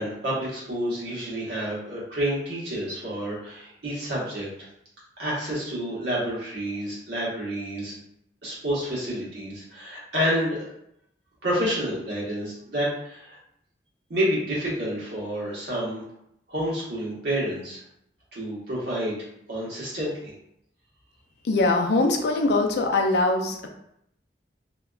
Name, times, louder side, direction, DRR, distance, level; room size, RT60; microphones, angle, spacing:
voice 1, 0.0-4.5 5.2-7.9 8.4-10.7 11.4-13.4 14.1-16.0 16.5-17.8 18.3-19.2 19.5-20.3, equal, 80° right, -7 dB, 1.2 m, -29 dB
voice 2, 21.4-23.7, left 2 dB, 70° left, 3 dB, 0.4 m, -22 dB
2.8 x 2.2 x 2.3 m, 0.77 s
head